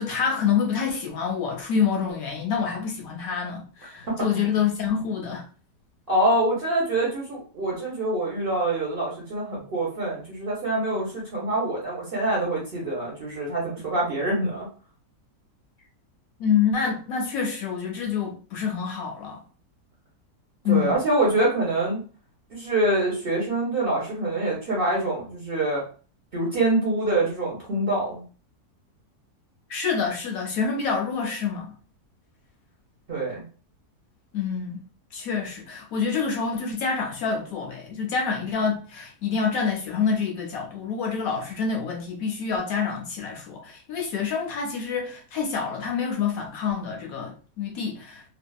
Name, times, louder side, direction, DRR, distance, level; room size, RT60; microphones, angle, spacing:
voice 1, 0.0-5.4 16.4-19.4 20.6-20.9 29.7-31.7 34.3-34.8 35.1-48.2, left 6 dB, 70° left, 0.9 m, -27 dB
voice 2, 6.1-14.7 20.7-22.0 22.5-25.8 26.3-28.2 33.1-33.4, right 2 dB, 45° right, 0.8 m, -25 dB
2.7 x 2.3 x 2.2 m
omnidirectional pair, 1.7 m